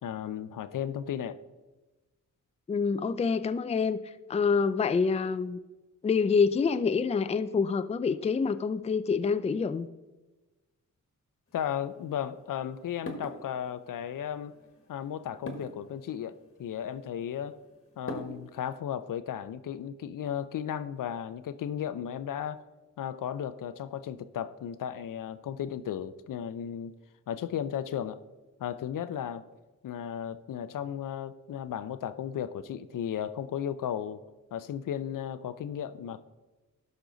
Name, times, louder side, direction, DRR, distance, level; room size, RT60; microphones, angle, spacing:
voice 1, 0.0-1.4 11.5-14.5 14.9-17.6 18.0-22.6 23.0-26.9 27.3-28.2 28.6-29.4 29.8-34.2 34.5-36.2, left 9 dB, 75° left, 14 dB, 0.5 m, -35 dB
voice 2, 2.7-4.0 4.3-5.6 6.0-9.9, left 5 dB, 20° left, 13 dB, 0.4 m, -26 dB
sound 1, 11.5-18.8, left 1 dB, 40° left, 1.3 m, -46 dB
12.0 x 5.4 x 3.9 m, 1.2 s
cardioid pair, 65°, 32 cm